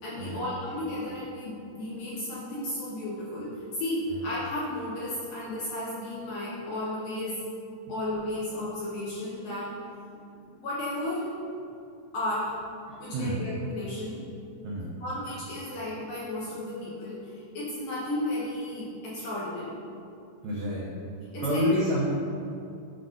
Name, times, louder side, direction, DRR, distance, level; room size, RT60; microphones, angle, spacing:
voice 1, 0.0-7.4 7.9-9.8 10.6-11.6 12.1-12.5 13.0-14.2 15.0-19.8 21.3-21.7, left 1 dB, 70° left, -7 dB, 2.3 m, -33 dB
voice 2, 12.9-13.4 14.6-15.0 20.4-20.9 21.4-22.1, right 1 dB, 85° right, -5 dB, 1.9 m, -30 dB
9.9 x 6.0 x 3.8 m, 2.5 s
omnidirectional pair, 5.4 m